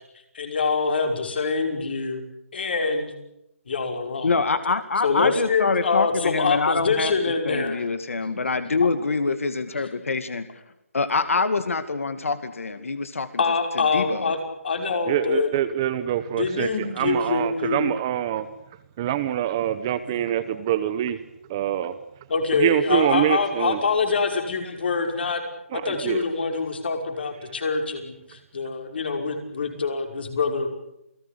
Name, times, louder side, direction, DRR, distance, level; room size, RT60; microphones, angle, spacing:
voice 1, 0.3-2.2 2.5-3.1 3.7-4.3 5.0-7.8 8.8-8.9 13.4-14.4 14.6-15.5 16.3-17.8 20.0-20.1 22.3-25.4 25.7-30.7, left 4 dB, 45° left, 5 dB, 5.7 m, -25 dB
voice 2, 4.2-7.2 7.4-10.5 10.9-13.4 13.7-14.3, left 4 dB, 70° left, 11 dB, 2.3 m, -25 dB
voice 3, 15.1-18.5 19.0-21.2 21.5-22.0 22.5-23.8 25.7-26.2, right 11 dB, 15° right, 12 dB, 0.9 m, -25 dB
29.0 x 18.5 x 8.6 m, 0.84 s
hypercardioid pair, 170°, 8 cm